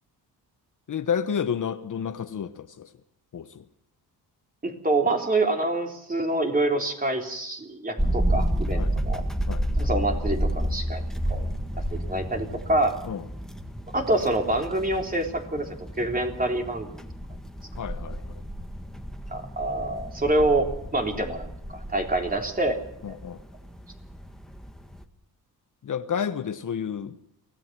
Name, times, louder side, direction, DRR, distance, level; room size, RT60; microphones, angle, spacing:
voice 1, 0.9-2.9 3.3-3.6 8.8-8.9 9.5-9.7 13.1-13.2 17.8-18.4 23.0-23.4 25.8-27.2, left 7 dB, 55° left, 10 dB, 1.1 m, -30 dB
voice 2, 4.6-9.2 9.8-11.5 11.9-13.0 13.9-16.9 19.3-22.8, right 2 dB, 20° right, 2 dB, 3.6 m, -26 dB
sound 1, 8.0-25.0, equal, ahead, 1.7 m, -31 dB
24.5 x 17.5 x 6.1 m, 0.76 s
cardioid pair, 115°, 38 cm